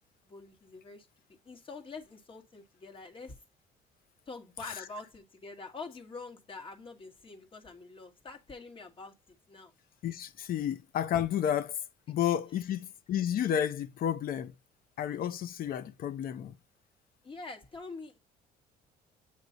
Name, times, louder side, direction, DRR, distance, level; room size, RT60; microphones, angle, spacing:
voice 1, 0.3-1.1 1.4-3.4 4.3-9.7 17.2-18.2, left 3 dB, 30° left, 1.7 m, -46 dB
voice 2, 10.0-11.8 12.1-14.5 15.0-16.5, left 10 dB, 60° left, 0.7 m, -31 dB
8.3 x 3.0 x 4.0 m
cardioid pair, 110°, 17 cm